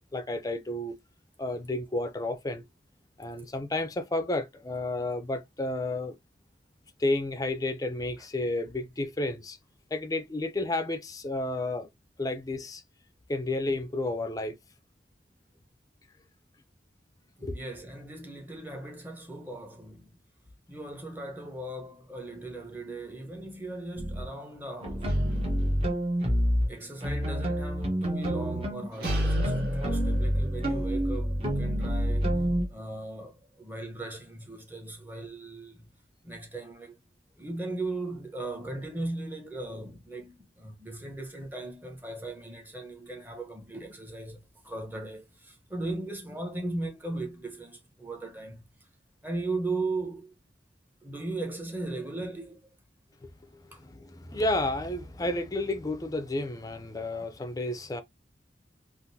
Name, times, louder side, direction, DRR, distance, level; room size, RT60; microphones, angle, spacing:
voice 1, 0.1-0.9 1.4-2.6 3.2-6.2 7.0-9.6 9.9-11.9 12.2-12.8 13.3-14.5 17.4-17.6 53.2-58.0, left 2 dB, 20° left, 0.4 m, -31 dB
voice 2, 17.4-20.2 20.7-25.2 26.7-35.9 36.2-37.0 37.4-48.7 49.2-50.3 51.0-52.7 53.7-53.8, right 2 dB, 10° right, 0.9 m, -38 dB
sound 1, 24.0-24.3 24.8-26.7 27.0-32.7, equal, 35° right, 1.0 m, -27 dB
sound 2, 24.8-27.5 27.8-27.9 28.9-33.8 34.1-34.4, right 2 dB, 55° right, 2.0 m, -46 dB
3.7 x 2.5 x 2.6 m
head